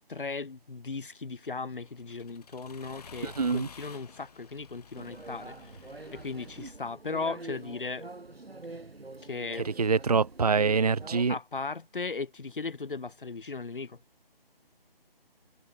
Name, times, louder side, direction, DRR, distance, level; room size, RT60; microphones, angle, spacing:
voice 1, 0.1-8.1 9.2-9.7 11.3-14.0, left 4 dB, 60° left, 4.2 m, -37 dB
Accelerating revving vroom, 1.4-6.7, left 6 dB, 40° left, 7.5 m, -52 dB
voice 2, 3.2-3.7 9.8-11.3, right 5 dB, 40° right, 0.5 m, -25 dB
sound 1, 4.9-11.2, right 2 dB, 85° right, 4.8 m, -45 dB
figure-of-eight pair, 165°, 30 cm